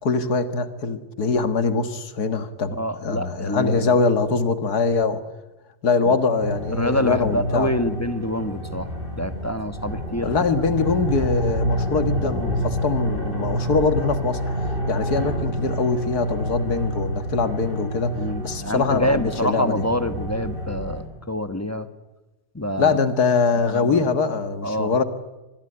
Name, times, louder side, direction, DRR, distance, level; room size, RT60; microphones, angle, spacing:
voice 1, 0.0-5.2 5.8-7.7 10.2-14.4 14.9-19.8 22.8-25.0, left 4 dB, 60° left, 10 dB, 2.1 m, -23 dB
voice 2, 2.7-3.9 6.1-6.2 6.7-8.9 9.2-10.3 18.1-21.9 22.5-23.0 23.7-24.2 24.6-24.9, equal, 10° left, 10 dB, 1.0 m, -26 dB
sound 1, 6.4-21.0, right 1 dB, 30° right, 6.5 m, -28 dB
26.0 x 20.5 x 9.8 m, 1.0 s
omnidirectional pair, 2.0 m